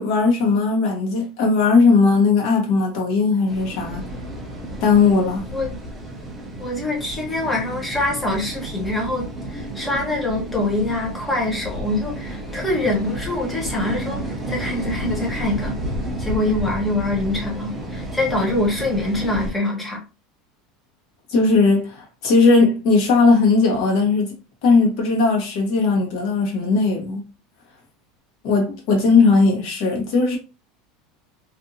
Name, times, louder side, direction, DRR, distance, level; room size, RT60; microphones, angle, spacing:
voice 1, 0.0-4.0 4.8-5.4 21.3-24.3 24.6-27.3 28.4-30.4, left 4 dB, 55° left, 1.1 m, -18 dB
sound 1, 3.5-19.5, right 1 dB, 10° right, 0.5 m, -31 dB
voice 2, 6.6-15.8 16.2-20.0, left 2 dB, 10° left, 0.9 m, -24 dB
2.6 x 2.5 x 2.6 m
supercardioid pair, 165°, 0 cm